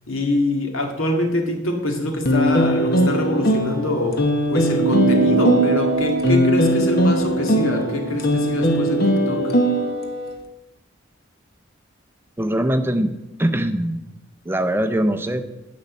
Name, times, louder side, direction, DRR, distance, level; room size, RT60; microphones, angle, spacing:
voice 1, 0.1-4.2 4.5-9.5, left 1 dB, 85° left, 3 dB, 1.9 m, -24 dB
sound 1, 2.3-10.3, equal, 50° left, 1.3 m, -20 dB
sound 2, 4.8-9.6, right 3 dB, 55° right, 0.5 m, -25 dB
voice 2, 12.4-13.1 13.4-14.0 14.4-15.4, right 1 dB, 10° right, 9 dB, 0.5 m, -21 dB
10.5 x 5.3 x 8.4 m, 0.97 s
head